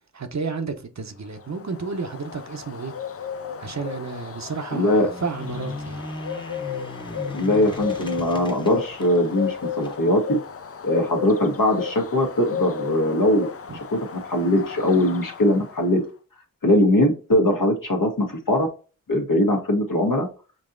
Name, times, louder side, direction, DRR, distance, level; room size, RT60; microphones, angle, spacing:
voice 1, 0.1-2.9 3.6-6.0 13.7-13.8, right 4 dB, 50° right, 0.7 m, -31 dB
Bird, 1.3-16.0, left 7 dB, 45° left, 0.5 m, -34 dB
voice 2, 4.7-5.1 7.3-10.4 10.8-13.5 13.9-16.0 16.6-18.7 19.1-20.3, left 1 dB, 70° left, 1.2 m, -21 dB
sound 1, 5.0-10.0, left 2 dB, 15° left, 0.9 m, -37 dB
5.2 x 2.7 x 2.5 m
wide cardioid pair, 50°, 34 cm